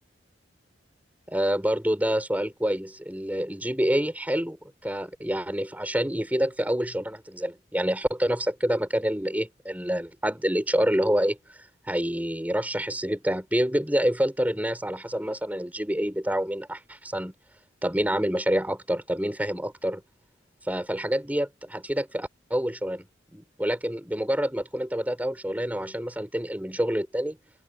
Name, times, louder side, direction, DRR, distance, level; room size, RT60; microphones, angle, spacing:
voice 1, 1.3-4.6 4.8-17.3 17.8-20.0 20.7-23.0 23.3-27.4, equal, 10° right, 6.7 m, -27 dB
open air
head